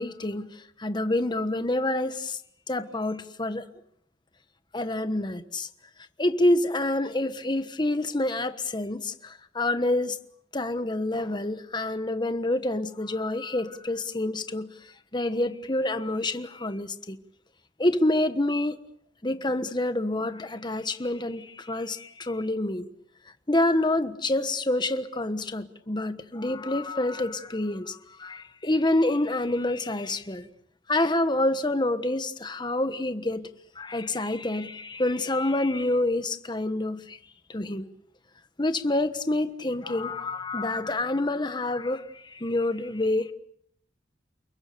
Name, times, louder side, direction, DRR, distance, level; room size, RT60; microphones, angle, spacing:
voice 1, 0.0-2.4 2.7-3.7 4.7-5.7 6.2-10.2 10.5-17.2 17.8-18.8 19.2-22.9 23.5-30.5 30.9-33.5 33.7-37.2 37.5-37.9 38.6-43.3, left 1 dB, 25° left, 1.3 m, -27 dB
30.0 x 21.5 x 6.9 m
head